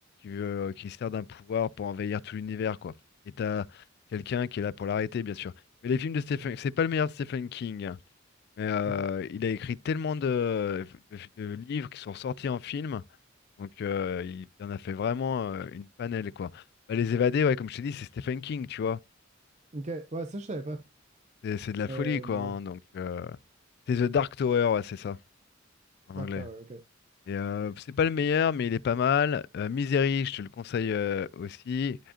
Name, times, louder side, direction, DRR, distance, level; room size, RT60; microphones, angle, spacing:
voice 1, 0.2-2.9 3.4-3.8 4.1-5.5 5.8-8.0 8.6-13.0 13.6-16.6 16.9-19.0 21.4-23.4 23.9-25.2 26.1-26.5 27.3-32.0, left 7 dB, 55° left, 0.3 m, -30 dB
voice 2, 19.7-20.8 21.8-22.5 26.1-26.8, right 2 dB, 35° right, 0.7 m, -37 dB
11.5 x 4.9 x 2.8 m
head